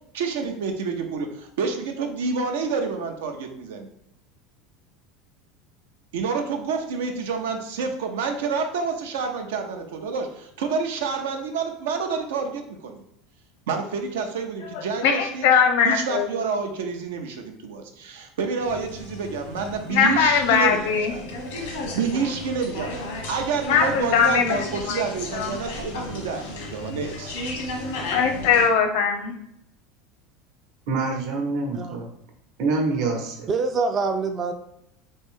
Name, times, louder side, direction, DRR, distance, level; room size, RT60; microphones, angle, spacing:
voice 1, 0.1-3.9 6.1-13.0 13.7-15.5 15.8-21.2 21.7-22.9 23.3-27.4, right 5 dB, 90° right, 4 dB, 0.6 m, -28 dB
voice 2, 14.7-16.3 19.9-21.1 23.7-24.6 24.9-25.0 25.3-25.6 28.1-29.3, left 6 dB, 70° left, 5 dB, 0.6 m, -20 dB
sound 1, 18.6-28.7, left 2 dB, 90° left, 1.0 m, -35 dB
voice 3, 30.9-32.1 32.6-33.5, right 3 dB, 60° right, 2 dB, 0.9 m, -26 dB
voice 4, 33.5-34.5, right 4 dB, 30° right, 6 dB, 0.3 m, -25 dB
3.1 x 2.6 x 3.5 m, 0.79 s
supercardioid pair, 130°, 0 cm